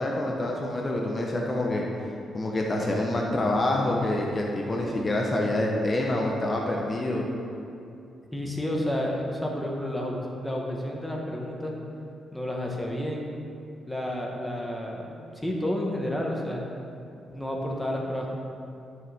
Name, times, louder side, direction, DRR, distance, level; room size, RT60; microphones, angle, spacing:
voice 1, 0.0-1.9 2.3-7.2, left 1 dB, 30° left, -1 dB, 1.0 m, -26 dB
voice 2, 8.3-11.8 12.3-13.3 13.9-16.6 17.3-18.3, left 1 dB, 10° left, -1 dB, 1.4 m, -30 dB
9.9 x 6.7 x 3.5 m, 2.6 s
cardioid pair, 85°, 0 cm